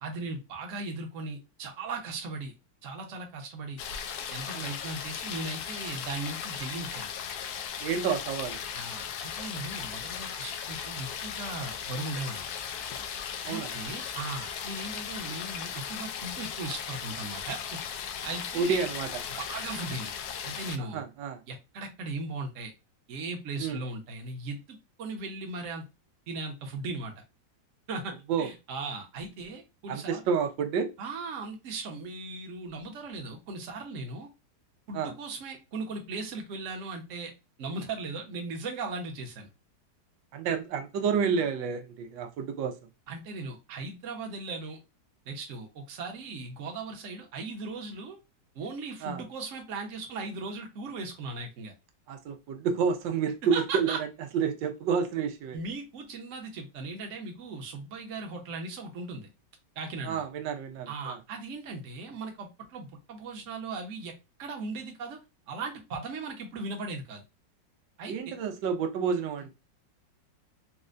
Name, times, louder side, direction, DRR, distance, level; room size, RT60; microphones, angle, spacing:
voice 1, 0.0-2.5 2.8-3.8 4.3-7.1 8.7-12.5 13.4-18.8 19.4-20.1 20.4-21.0 21.5-22.7 23.1-25.8 26.3-27.2 27.9-30.2 31.0-34.3 34.9-37.3 37.6-39.5 43.1-44.8 45.3-48.2 48.5-51.7 53.5-54.0 55.5-59.3 59.8-60.2 60.9-64.1 64.4-65.2 65.5-67.2 68.0-68.3, right 3 dB, 55° right, 1.0 m, -38 dB
sound 1, 3.8-20.8, left 8 dB, 70° left, 0.9 m, -37 dB
voice 2, 7.8-8.6 13.4-13.7 18.5-19.1 20.8-21.4 23.6-23.8 28.3-28.5 29.9-30.9 34.9-35.1 40.3-42.7 49.0-49.2 52.1-54.1 54.3-55.6 60.0-61.2 68.1-69.5, right 6 dB, 90° right, 1.3 m, -29 dB
4.2 x 2.1 x 2.5 m
omnidirectional pair, 2.0 m